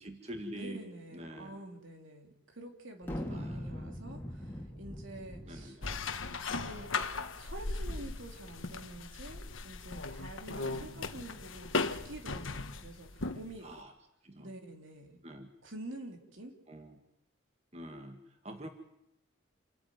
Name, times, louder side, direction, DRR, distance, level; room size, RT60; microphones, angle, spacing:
voice 1, 0.0-1.6 3.3-3.8 5.4-6.0 6.6-6.9 10.5-11.1 13.6-13.9 14.2-14.5 15.2-15.5 16.7-17.0 17.7-18.7, right 1 dB, 30° right, 5 dB, 1.8 m, -46 dB
voice 2, 0.5-5.8 6.5-7.1 7.3-13.7 14.4-15.2 15.6-16.5, right 1 dB, 75° right, 4 dB, 3.3 m, -48 dB
sound 1, 3.0-6.7, equal, 10° left, 2.9 m, -42 dB
sound 2, 5.8-13.6, left 3 dB, 80° left, 1.4 m, -37 dB
28.0 x 14.5 x 9.4 m, 0.81 s
head